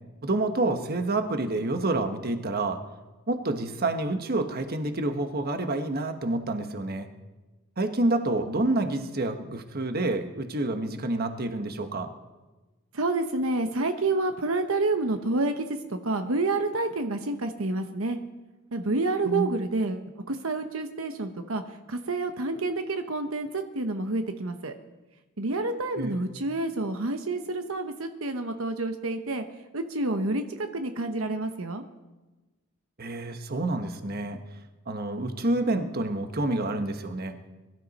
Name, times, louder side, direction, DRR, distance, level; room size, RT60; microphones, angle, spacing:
voice 1, 0.2-2.8 3.3-7.1 7.8-12.1 19.2-19.5 26.0-26.2 33.0-34.4 34.9-37.4, right 2 dB, 45° right, 7 dB, 1.2 m, -28 dB
voice 2, 12.9-18.2 18.7-21.6 21.9-24.7 25.4-29.4 29.7-31.8, right 2 dB, 75° right, 7 dB, 1.0 m, -28 dB
23.0 x 13.0 x 4.2 m, 1.2 s
head